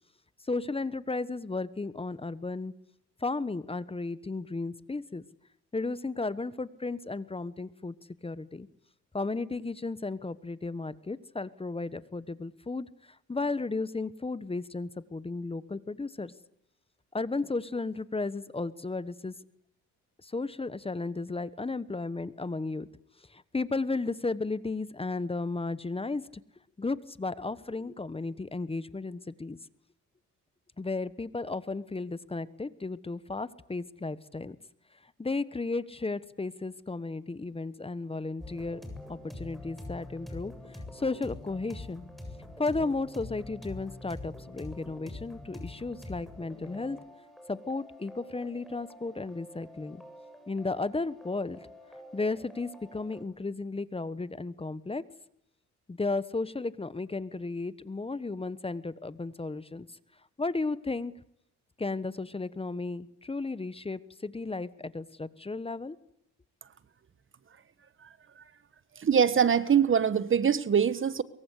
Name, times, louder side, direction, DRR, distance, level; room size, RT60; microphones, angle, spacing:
voice 1, 0.5-2.7 3.2-5.2 5.7-7.9 8.2-8.7 9.1-12.9 13.3-16.3 17.1-19.3 20.2-22.9 23.3-26.2 26.8-29.6 30.8-34.6 35.2-38.8 39.1-42.1 42.6-47.0 47.5-50.0 50.5-51.6 52.1-55.0 55.9-59.9 60.4-61.1 61.8-66.0, left 3 dB, 20° left, 1.2 m, -34 dB
sound 1, 38.4-53.2, left 1 dB, ahead, 7.7 m, -45 dB
voice 2, 69.0-71.2, right 7 dB, 40° right, 1.4 m, -23 dB
23.0 x 23.0 x 8.4 m
cardioid pair, 90°, 30 cm